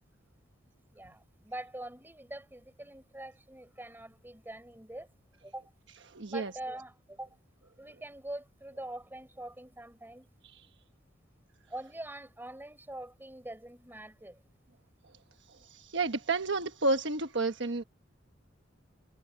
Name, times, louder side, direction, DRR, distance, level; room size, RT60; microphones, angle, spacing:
voice 1, 0.6-5.1 5.4-5.6 6.3-7.4 7.8-10.3 11.7-14.4, right 1 dB, 10° right, 6.3 m, -44 dB
voice 2, 6.1-6.5 10.5-10.6 15.6-17.8, right 3 dB, 65° right, 1.3 m, -31 dB
head